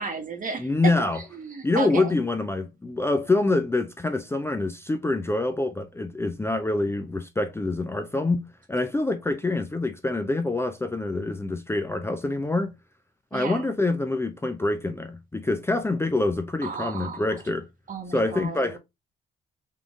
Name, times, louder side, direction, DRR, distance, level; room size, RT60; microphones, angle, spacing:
voice 1, 0.0-2.2 13.3-13.7 16.6-17.4 17.9-18.8, right 5 dB, 40° right, 1.5 m, -34 dB
voice 2, 0.6-1.2 1.6-12.7 13.3-17.6 18.1-18.8, left 2 dB, 10° left, 0.5 m, -26 dB
3.8 x 3.7 x 3.6 m
cardioid pair, 90°, 20 cm